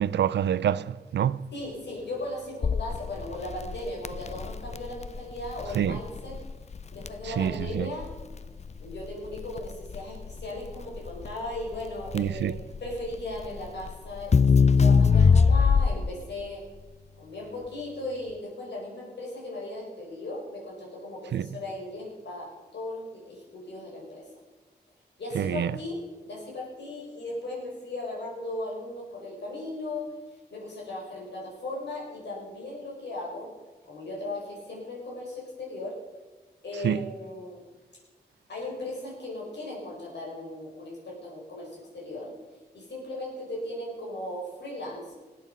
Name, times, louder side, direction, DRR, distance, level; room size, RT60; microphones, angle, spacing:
voice 1, 0.0-1.5 5.7-6.0 7.2-7.9 12.1-12.5 21.3-21.5 25.3-25.8 36.8-37.0, right 9 dB, 90° right, 0.4 m, -26 dB
voice 2, 1.5-6.4 6.9-8.1 8.8-16.6 17.2-24.3 25.2-30.1 30.5-33.5 33.8-36.0 36.6-37.6 38.5-42.3 42.7-45.1, left 1 dB, 80° left, 5.1 m, -37 dB
Crackle, 2.6-16.2, left 5 dB, 40° left, 0.5 m, -24 dB
19.0 x 8.4 x 5.4 m
cardioid pair, 50°, 17 cm